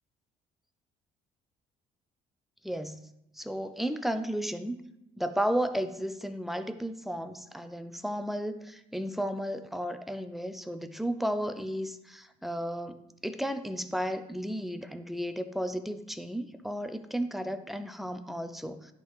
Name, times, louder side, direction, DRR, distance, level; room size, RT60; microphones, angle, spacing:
voice 1, 2.6-3.0 3.4-4.8 5.2-18.9, equal, ahead, 9 dB, 0.5 m, -33 dB
10.5 x 3.8 x 4.7 m, 0.84 s
cardioid pair, 110°, 17 cm